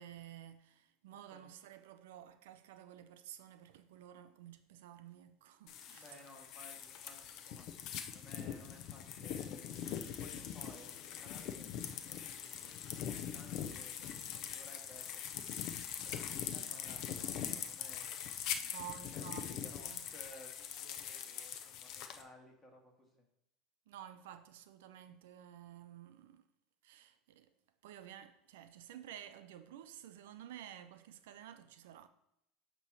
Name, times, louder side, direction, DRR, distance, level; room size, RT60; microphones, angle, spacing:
voice 1, 0.0-6.2 18.6-20.1 23.9-26.4 26.8-27.5 27.8-32.1, right 11 dB, 90° right, 0.5 m, -52 dB
voice 2, 1.1-1.5 5.9-11.8 12.0-15.7 16.0-18.7 19.1-23.2 31.5-31.7, left 1 dB, 15° left, 1.8 m, -59 dB
sound 1, 5.7-22.2, left 9 dB, 55° left, 0.6 m, -42 dB
8.7 x 3.0 x 6.2 m
supercardioid pair, 125°, 0 cm